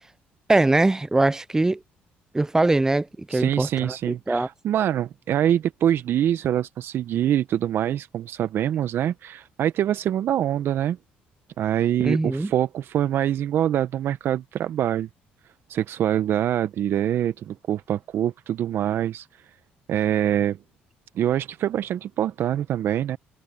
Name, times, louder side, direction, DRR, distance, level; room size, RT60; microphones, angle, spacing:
voice 1, 0.5-1.8 2.3-4.5 12.0-12.5, right 2 dB, 15° right, 0.4 m, -22 dB
voice 2, 3.3-11.0 11.6-15.1 15.7-19.3 19.9-20.6 21.1-23.2, right 11 dB, 60° right, 0.8 m, -24 dB
supercardioid pair, 75°, 4 cm